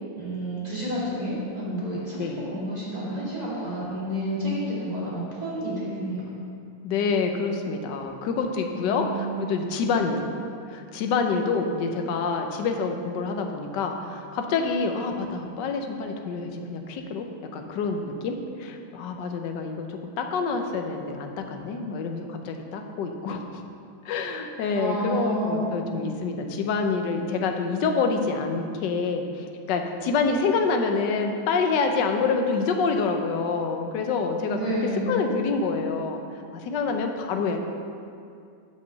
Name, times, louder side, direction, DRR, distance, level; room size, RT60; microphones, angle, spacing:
voice 1, 0.1-6.2 8.7-9.3 24.7-25.8 34.5-35.1, equal, 20° right, -8 dB, 2.6 m, -30 dB
voice 2, 6.8-10.3 10.7-17.3 17.5-23.6 24.0-36.2 36.5-37.6, left 4 dB, 65° left, 4 dB, 1.3 m, -27 dB
8.4 x 5.3 x 6.7 m, 2.4 s
omnidirectional pair, 2.3 m